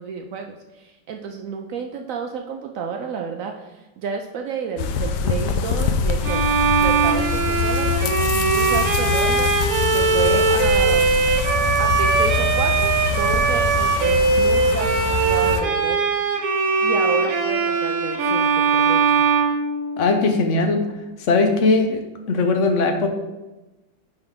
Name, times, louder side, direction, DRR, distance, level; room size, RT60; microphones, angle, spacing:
voice 1, 0.0-6.4 6.8-11.2 11.8-16.4 16.8-19.2, right 6 dB, 75° right, 4 dB, 0.7 m, -31 dB
sound 1, 4.8-15.6, left 6 dB, 75° left, 1.2 m, -24 dB
Bowed string instrument, 6.2-20.3, right 4 dB, 60° right, 1.3 m, -20 dB
voice 2, 20.0-20.8 21.3-22.0 22.3-23.1, left 3 dB, 55° left, 5 dB, 0.9 m, -19 dB
9.8 x 3.9 x 3.6 m, 1.1 s
omnidirectional pair, 2.0 m